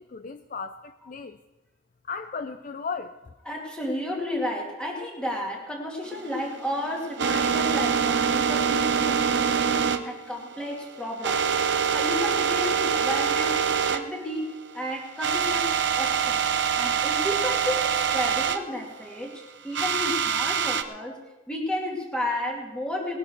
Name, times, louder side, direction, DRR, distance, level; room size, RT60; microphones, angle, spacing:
voice 1, 0.0-1.4 2.0-3.3, left 5 dB, 40° left, 9 dB, 0.4 m, -36 dB
voice 2, 3.5-11.4 11.9-16.4 16.7-21.2 21.5-23.2, left 1 dB, 5° left, -2 dB, 2.5 m, -32 dB
sound 1, 6.0-14.0 14.3-14.4 14.8-14.9 15.2-18.6 19.7-20.8, right 7 dB, 55° right, 0.8 m, -25 dB
19.5 x 11.0 x 4.6 m, 1.1 s
head